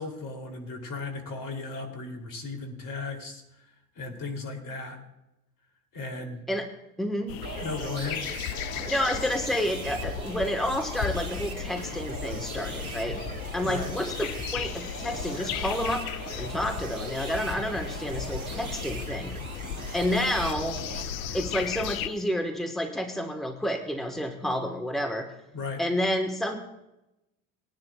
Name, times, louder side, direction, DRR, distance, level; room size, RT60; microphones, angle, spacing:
voice 1, 0.0-3.6 3.9-5.0 5.9-6.4 7.6-8.2 13.6-13.9 25.5-25.8, left 3 dB, 50° left, 5 dB, 3.3 m, -36 dB
voice 2, 7.0-7.3 8.7-13.2 13.5-16.0 16.4-19.3 19.9-20.8 21.3-25.3 25.8-26.6, equal, ahead, 3 dB, 1.6 m, -29 dB
sound 1, 7.3-22.1, left 9 dB, 70° left, 0.6 m, -36 dB
sound 2, 7.4-21.0, right 4 dB, 85° right, 1.8 m, -41 dB
sound 3, 8.8-22.3, left 2 dB, 35° left, 2.2 m, -42 dB
21.0 x 10.5 x 2.5 m, 0.91 s
hypercardioid pair, 70°, 42 cm